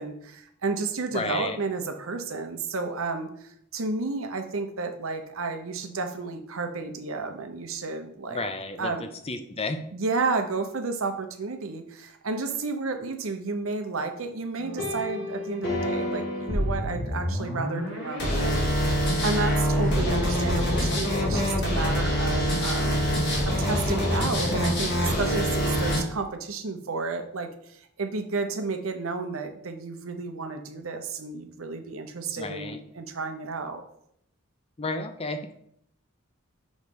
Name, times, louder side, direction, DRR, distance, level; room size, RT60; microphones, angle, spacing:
voice 1, 0.0-8.5 8.8-9.1 9.9-23.1 23.4-33.8, right 4 dB, 85° right, 6 dB, 0.8 m, -32 dB
voice 2, 1.1-1.6 8.3-8.9 9.2-9.8 32.4-32.8 34.8-35.5, left 2 dB, 30° left, 8 dB, 0.6 m, -32 dB
sound 1, 14.6-26.0, equal, 60° left, 2.1 m, -26 dB
6.1 x 3.2 x 5.3 m, 0.71 s
head